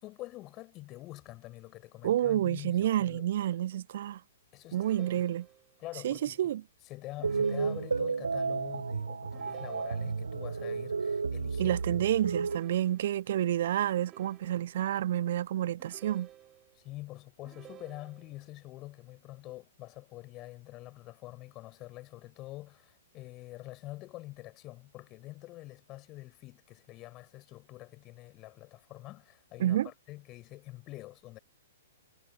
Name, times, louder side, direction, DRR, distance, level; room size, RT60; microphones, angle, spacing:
voice 1, 0.0-3.3 4.5-5.3 5.8-6.5 6.8-11.8 16.7-31.4, left 18 dB, 30° left, 5.8 m, -46 dB
voice 2, 2.0-4.2 4.7-5.4 6.0-6.6 11.6-16.3 29.6-29.9, right 12 dB, 50° right, 1.3 m, -29 dB
sound 1, 4.7-5.8 7.2-8.2 9.3-10.4 12.4-13.4 14.0-14.9 15.8-16.8 17.4-18.5, right 12 dB, 20° right, 7.9 m, -54 dB
sound 2, 7.2-12.6, right 4 dB, 70° right, 0.9 m, -32 dB
figure-of-eight pair, 115°, 0 cm